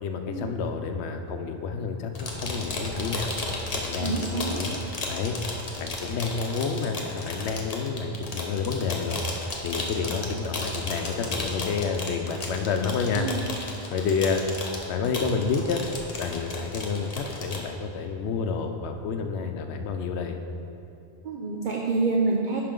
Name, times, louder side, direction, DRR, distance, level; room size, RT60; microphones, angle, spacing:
voice 1, 0.0-3.3 3.7-4.8 5.1-5.3 5.8-9.2 9.6-13.3 13.9-14.4 14.9-15.8 16.2-20.4, left 5 dB, 85° left, 5 dB, 0.9 m, -29 dB
sound 1, 2.1-17.6, left 2 dB, 40° left, 0.8 m, -34 dB
voice 2, 4.0-4.6 13.1-13.4 21.2-22.6, right 3 dB, 55° right, -2 dB, 0.7 m, -27 dB
10.5 x 4.9 x 3.8 m, 2.6 s
omnidirectional pair, 1.1 m